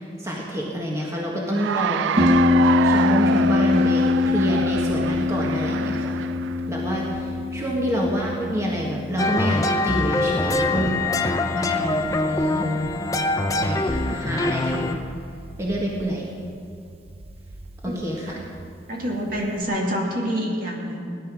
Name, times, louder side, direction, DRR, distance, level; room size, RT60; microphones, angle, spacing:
voice 1, 0.2-2.3 2.6-6.2 6.7-11.3 11.5-12.7 13.6-15.0 15.6-16.3 17.8-18.4, equal, 15° right, -3 dB, 1.6 m, -27 dB
Cheering / Applause, 1.5-6.6, right 8 dB, 80° right, 0.3 m, -27 dB
Harp, 2.2-19.6, left 3 dB, 30° right, 1.0 m, -26 dB
voice 2, 7.4-7.7 17.9-18.4 18.9-21.2, equal, 50° right, -1 dB, 2.5 m, -28 dB
sound 1, 9.2-14.9, left 2 dB, 20° left, 0.6 m, -24 dB
17.5 x 11.0 x 6.2 m, 2.5 s
head